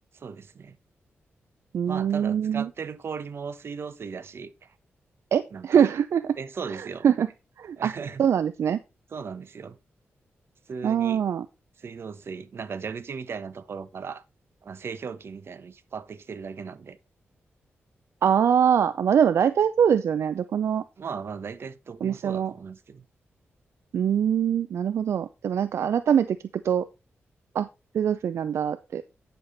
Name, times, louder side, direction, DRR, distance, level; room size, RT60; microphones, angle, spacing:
voice 1, 0.1-0.8 1.9-4.7 5.5-5.8 6.3-7.1 7.8-8.2 9.1-9.8 10.7-11.2 11.8-14.2 14.6-17.0 21.0-23.0, right 5 dB, 60° right, 1.1 m, -37 dB
voice 2, 1.7-2.7 5.3-6.4 6.7-7.3 7.6-7.9 8.2-8.8 10.8-11.5 18.2-20.8 22.0-22.5 23.9-26.4 26.6-26.9 27.5-27.7 27.9-29.0, right 8 dB, 75° right, 0.5 m, -23 dB
9.7 x 6.7 x 4.1 m
cardioid pair, 85°, 5 cm